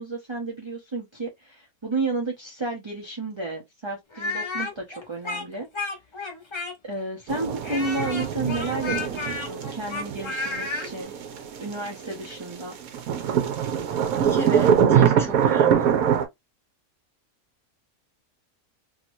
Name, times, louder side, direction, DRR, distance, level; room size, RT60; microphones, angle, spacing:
voice 1, 0.0-5.7 6.8-11.1 11.6-12.7, right 3 dB, 30° right, 0.5 m, -32 dB
Speech, 4.1-7.0 7.6-10.9, left 3 dB, 35° left, 0.5 m, -32 dB
sound 1, 7.3-12.5 12.8-16.2, right 8 dB, 70° right, 1.1 m, -23 dB
voice 2, 14.2-15.9, right 1 dB, ahead, 0.9 m, -33 dB
2.9 x 2.9 x 2.5 m
omnidirectional pair, 1.6 m